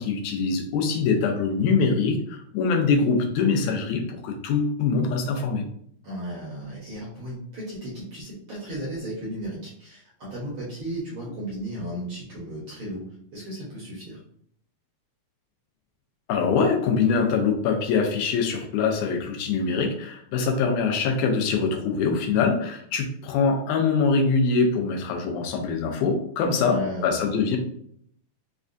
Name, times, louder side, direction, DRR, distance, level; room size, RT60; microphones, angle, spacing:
voice 1, 0.0-5.6 16.3-27.6, left 5 dB, 85° left, 3 dB, 2.1 m, -23 dB
voice 2, 6.0-13.0 13.3-14.2 26.6-27.4, right 1 dB, 65° right, -6 dB, 1.3 m, -35 dB
5.1 x 2.3 x 2.5 m, 0.66 s
omnidirectional pair, 3.5 m